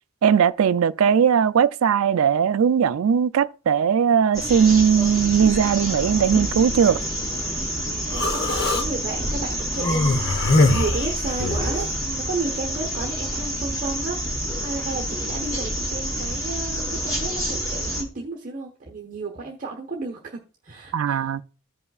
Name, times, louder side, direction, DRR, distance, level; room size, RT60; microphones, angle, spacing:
voice 1, 0.2-7.0 20.9-21.4, right 7 dB, 80° right, 0.4 m, -19 dB
sound 1, 4.3-18.0, equal, 15° left, 2.7 m, -28 dB
voice 2, 7.8-21.3, right 3 dB, 35° right, 1.2 m, -33 dB
Human voice, 8.1-8.9 9.8-11.8, left 2 dB, 50° left, 0.9 m, -21 dB
15.0 x 5.5 x 2.3 m
head